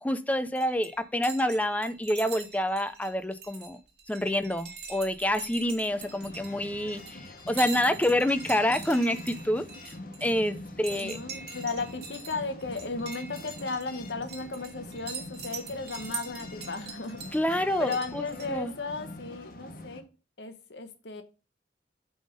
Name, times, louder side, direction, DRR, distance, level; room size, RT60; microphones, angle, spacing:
voice 1, 0.0-3.8 4.1-7.2 7.5-9.6 10.2-11.2 17.3-18.2 18.5-18.7, left 1 dB, 10° left, 0.5 m, -27 dB
sound 1, 0.5-18.5, right 5 dB, 65° right, 2.1 m, -43 dB
sound 2, 5.9-20.0, left 2 dB, 55° left, 1.2 m, -44 dB
voice 2, 10.9-17.3 17.8-20.1 20.4-21.2, left 3 dB, 75° left, 1.0 m, -35 dB
8.7 x 3.6 x 5.2 m
head